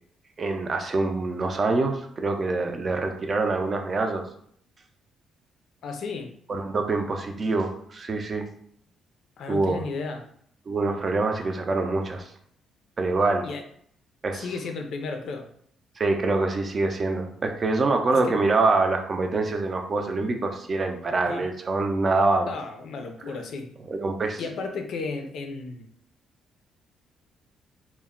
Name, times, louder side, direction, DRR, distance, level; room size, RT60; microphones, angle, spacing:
voice 1, 0.4-4.3 6.5-8.5 9.5-9.8 10.7-12.3 13.0-13.5 14.2-14.4 16.0-22.5 23.9-24.4, right 3 dB, 40° right, 4 dB, 0.4 m, -25 dB
voice 2, 5.8-6.3 9.4-10.2 13.4-13.6 14.3-15.5 18.2-18.4 21.2-21.4 22.4-23.7 24.4-25.9, left 4 dB, 70° left, 5 dB, 0.4 m, -33 dB
2.2 x 2.0 x 3.6 m, 0.64 s
cardioid pair, 90°, 0 cm